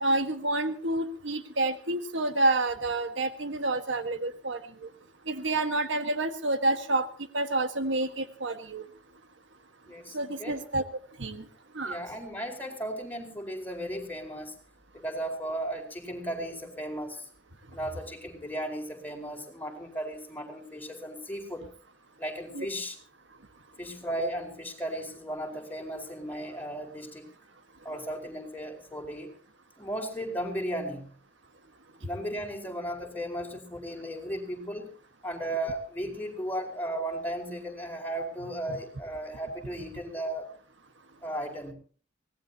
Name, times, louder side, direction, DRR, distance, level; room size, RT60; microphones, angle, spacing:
voice 1, 0.0-4.6 5.3-7.1 7.3-8.8 10.1-10.8 11.2-11.4 11.7-12.0 22.5-22.7, right 2 dB, 70° right, 9 dB, 1.5 m, -28 dB
voice 2, 9.8-10.6 11.8-14.5 14.9-17.3 17.7-21.7 22.2-23.0 23.8-27.2 27.8-29.3 29.8-31.1 32.0-34.9 35.2-40.6 41.2-41.7, right 1 dB, 10° left, 2 dB, 4.6 m, -35 dB
24.0 x 18.5 x 2.9 m, 0.41 s
head